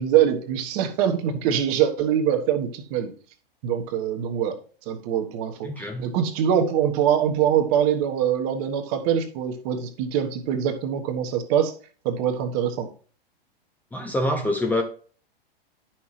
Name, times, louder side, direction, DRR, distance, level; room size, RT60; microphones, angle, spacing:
voice 1, 0.0-3.1 3.6-4.6 4.9-11.7 12.0-12.9, right 9 dB, 40° right, 1.3 m, -23 dB
voice 2, 5.6-6.1 13.9-14.8, left 1 dB, 5° left, 0.7 m, -25 dB
10.5 x 5.9 x 3.2 m
figure-of-eight pair, 110°, 30 cm